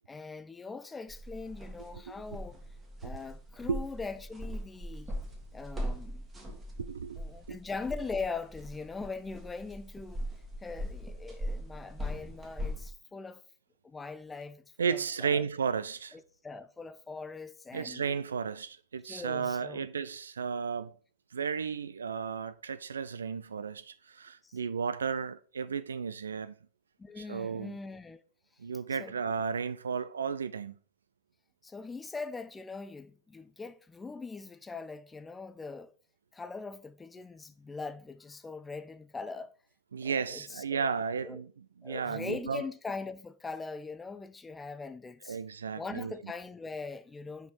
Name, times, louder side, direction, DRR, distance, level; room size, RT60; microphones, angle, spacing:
voice 1, 0.1-2.6 3.0-5.1 5.5-6.2 7.2-10.2 10.6-13.4 13.8-15.4 16.1-18.0 19.1-19.9 24.4-24.6 27.0-28.2 29.0-29.1 31.6-35.9 36.3-39.5 40.0-40.9 41.2-41.4 41.8-45.4 45.7-47.5, left 4 dB, 15° left, 0.4 m, -41 dB
sound 1, 1.1-12.9, equal, 15° right, 1.8 m, -40 dB
voice 2, 6.5-7.2 7.5-7.6 14.8-16.2 17.7-21.0 21.3-26.5 27.2-27.8 28.6-30.7 39.9-42.6 45.3-46.2, right 6 dB, 70° right, 0.4 m, -34 dB
5.2 x 5.2 x 4.1 m
figure-of-eight pair, 90°, 0 cm